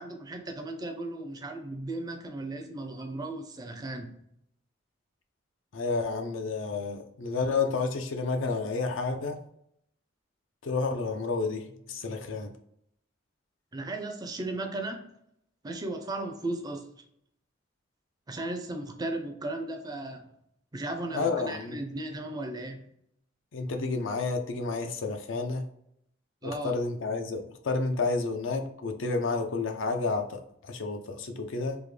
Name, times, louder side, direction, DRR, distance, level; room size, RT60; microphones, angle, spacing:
voice 1, 0.0-4.2 13.7-15.2 15.6-17.0 18.3-20.3 20.7-22.8 26.4-26.7, right 2 dB, 20° right, 0.4 m, -36 dB
voice 2, 5.7-9.4 10.6-12.5 21.1-21.8 23.5-25.7 26.4-31.8, left 3 dB, 80° left, 0.5 m, -30 dB
3.4 x 2.1 x 3.2 m
head